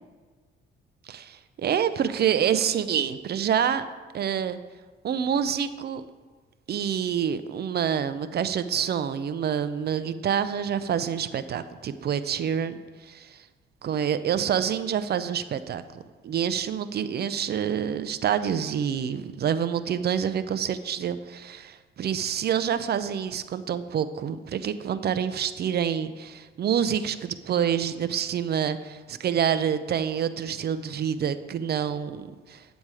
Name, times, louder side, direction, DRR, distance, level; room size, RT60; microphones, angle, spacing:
voice 1, 1.1-3.8 4.1-4.6 5.0-6.0 6.7-13.4 13.8-15.8 16.2-32.6, right 8 dB, 55° right, 13 dB, 0.6 m, -27 dB
8.9 x 7.2 x 4.8 m, 1.4 s
cardioid pair, 90°, 20 cm